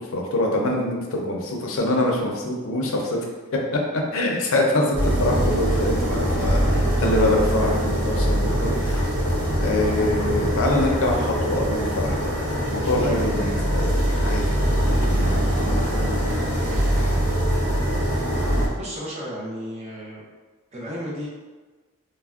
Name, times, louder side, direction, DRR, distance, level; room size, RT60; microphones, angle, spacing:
voice 1, 0.0-3.2 3.5-3.8 4.1-9.1 9.6-12.4 12.7-14.6 15.0-16.6, left 1 dB, 70° left, 0 dB, 0.5 m, -25 dB
sound 1, 4.9-18.7, equal, 75° right, 0.7 m, -23 dB
voice 2, 13.0-13.3 14.8-15.0 18.7-20.2 20.7-21.3, equal, 30° right, -4 dB, 0.4 m, -33 dB
3.3 x 2.1 x 2.3 m, 1.3 s
head